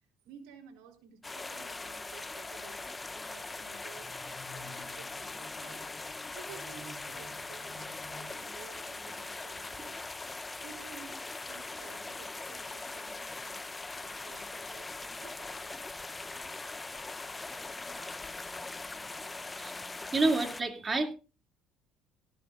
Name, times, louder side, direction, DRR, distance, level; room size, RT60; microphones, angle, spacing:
voice 1, 0.2-5.9 6.3-10.1 10.6-13.7 14.0-15.9, right 7 dB, 85° right, 2 dB, 3.9 m, -54 dB
sound 1, 1.2-20.6, left 3 dB, 15° left, 0.8 m, -41 dB
sound 2, 3.0-8.3, left 3 dB, 35° left, 2.8 m, -54 dB
voice 2, 20.1-21.1, right 2 dB, 25° right, 5 dB, 2.6 m, -28 dB
17.0 x 14.5 x 2.5 m, 0.32 s
supercardioid pair, 100°, 0 cm